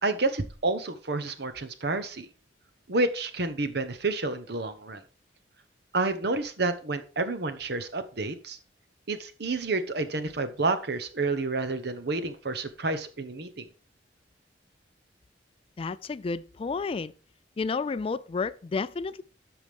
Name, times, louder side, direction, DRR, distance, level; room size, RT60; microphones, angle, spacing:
voice 1, 0.0-2.3 2.9-5.0 5.9-8.6 9.1-13.7, right 3 dB, 60° right, 1.0 m, -29 dB
voice 2, 15.8-17.1 17.6-19.2, left 4 dB, 30° left, 0.3 m, -31 dB
13.0 x 5.0 x 3.5 m
head